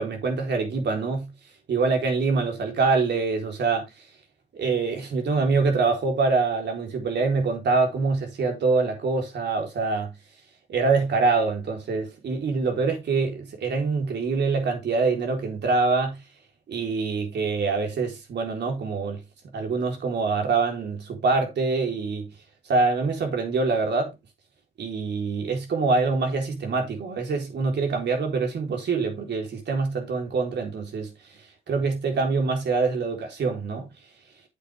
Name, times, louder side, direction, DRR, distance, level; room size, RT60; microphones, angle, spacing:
voice 1, 0.0-1.3 1.7-3.9 4.5-10.1 10.7-16.2 16.7-19.2 19.5-22.3 22.7-24.1 24.8-31.1 31.7-33.9, right 4 dB, 60° right, 4.0 m, -25 dB
8.4 x 7.6 x 3.6 m
cardioid pair, 90°, 20 cm